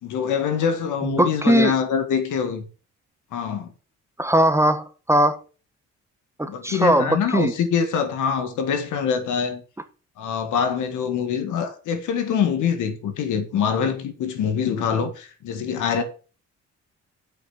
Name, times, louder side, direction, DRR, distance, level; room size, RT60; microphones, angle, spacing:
voice 1, 0.0-2.7 3.3-3.7 6.5-9.6 10.2-16.0, left 7 dB, 80° left, 1.9 m, -24 dB
voice 2, 1.0-1.7 4.2-5.4 6.4-7.5, right 1 dB, 10° right, 1.1 m, -20 dB
7.8 x 6.2 x 6.2 m
cardioid pair, 90°, 30 cm